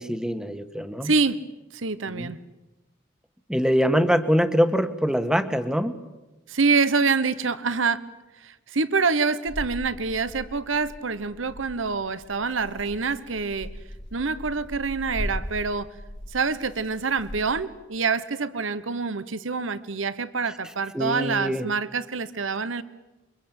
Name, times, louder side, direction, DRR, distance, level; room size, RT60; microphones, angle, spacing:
voice 1, 0.0-1.1 2.1-2.3 3.5-6.0 20.9-21.7, equal, 5° right, 9 dB, 1.4 m, -23 dB
voice 2, 1.0-1.4 1.7-2.4 6.5-8.0 8.4-13.7 14.1-15.9 16.3-22.8, right 4 dB, 85° right, 15 dB, 1.1 m, -26 dB
sound 1, 9.5-17.7, equal, 75° left, 4.5 m, -39 dB
28.0 x 24.0 x 8.9 m, 1.1 s
head